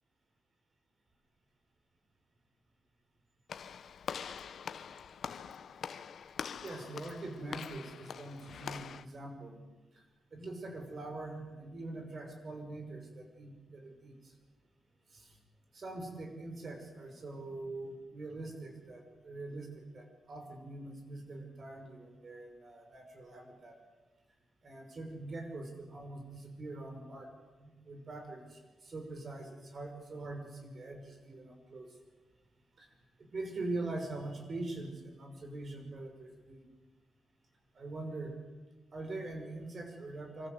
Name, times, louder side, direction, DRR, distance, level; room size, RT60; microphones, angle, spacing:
Walk footsteps / Slam, 3.5-9.0, left 7 dB, 60° left, 1.1 m, -44 dB
voice 1, 6.6-9.6 9.9-10.0 10.3-14.3 15.1-15.4 15.7-23.8 24.6-27.3 27.6-31.9 32.8-32.9 33.2-36.6 37.7-38.4 38.9-40.5, right 2 dB, 40° right, 5 dB, 5.8 m, -43 dB
26.5 x 26.5 x 8.2 m, 1.2 s
wide cardioid pair, 150°, 0 cm